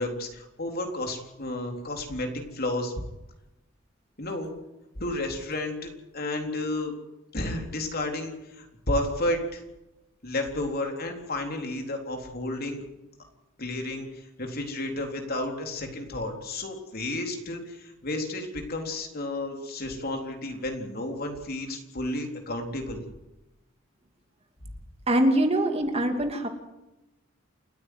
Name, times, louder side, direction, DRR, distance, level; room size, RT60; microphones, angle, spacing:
voice 1, 0.0-2.3 2.5-2.9 4.2-4.5 5.0-6.9 7.3-9.6 10.2-12.8 13.6-23.0, left 1 dB, 50° left, 3 dB, 3.8 m, -32 dB
voice 2, 25.1-26.5, right 1 dB, 30° right, 5 dB, 2.6 m, -23 dB
29.0 x 9.7 x 9.5 m, 0.95 s
head